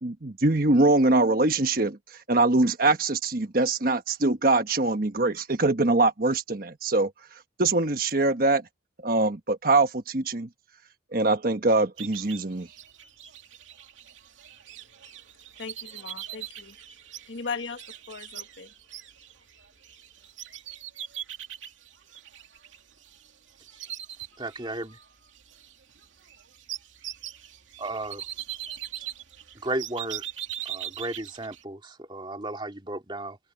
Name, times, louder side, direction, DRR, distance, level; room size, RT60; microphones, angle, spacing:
voice 1, 0.0-7.1 7.6-8.6 9.0-10.5 11.1-12.7, right 2 dB, 50° right, 1.2 m, -23 dB
sound 1, 12.0-23.3 23.6-25.0 25.3-31.6, right 11 dB, 85° right, 2.7 m, -41 dB
voice 2, 15.6-16.8 17.3-18.7, left 5 dB, 75° left, 1.8 m, -38 dB
voice 3, 24.4-25.0 27.8-28.2 29.6-30.2 30.6-33.4, right 2 dB, 25° right, 2.6 m, -34 dB
head